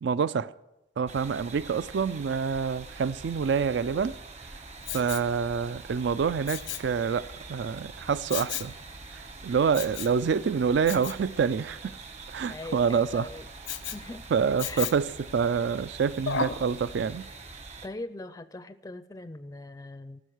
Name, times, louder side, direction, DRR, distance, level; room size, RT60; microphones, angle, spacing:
voice 1, 0.0-0.5 1.0-4.1 4.9-8.7 9.1-12.0 12.3-13.3 14.3-17.3, right 6 dB, 65° right, 0.4 m, -27 dB
sound 1, 1.1-17.9, right 3 dB, 35° right, 1.1 m, -44 dB
Respiratory sounds, 4.8-5.3 6.5-6.9 8.3-8.8 9.7-10.2 10.9-11.2 13.7-14.0 14.6-15.1 16.3-16.7 17.2-17.3, left 8 dB, 90° left, 0.8 m, -33 dB
voice 2, 12.5-13.5 13.9-14.3 14.6-14.9 17.8-20.2, left 2 dB, 20° left, 0.4 m, -41 dB
14.5 x 6.4 x 9.3 m
head